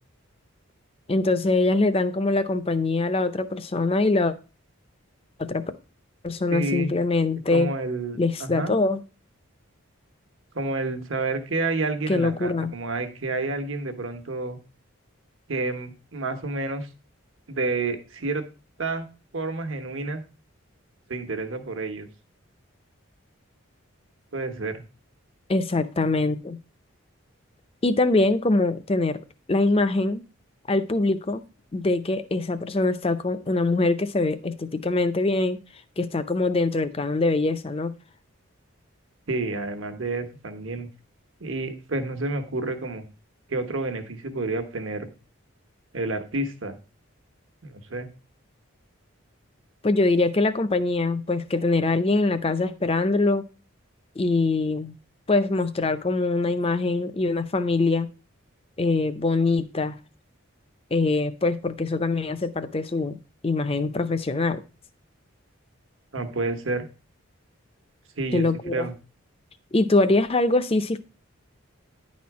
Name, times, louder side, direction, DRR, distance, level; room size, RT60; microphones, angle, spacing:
voice 1, 1.1-4.3 5.4-5.6 6.2-7.7 8.2-9.0 12.1-12.7 25.5-26.6 27.8-29.2 29.5-30.2 30.7-31.4 31.7-35.6 36.0-37.9 49.8-53.4 54.2-55.0 55.3-58.1 58.8-60.0 60.9-63.2 63.4-64.6 68.3-68.9 69.7-71.0, left 2 dB, 25° left, 0.5 m, -23 dB
voice 2, 6.5-6.9 7.5-8.8 10.5-14.6 15.5-16.9 17.5-18.4 18.8-19.0 19.3-20.2 21.1-22.1 24.3-24.8 39.3-40.9 41.4-43.0 43.5-45.1 45.9-46.8 47.6-48.1 66.1-66.9 68.2-68.9, right 3 dB, 70° right, 1.2 m, -29 dB
10.0 x 4.3 x 4.7 m
head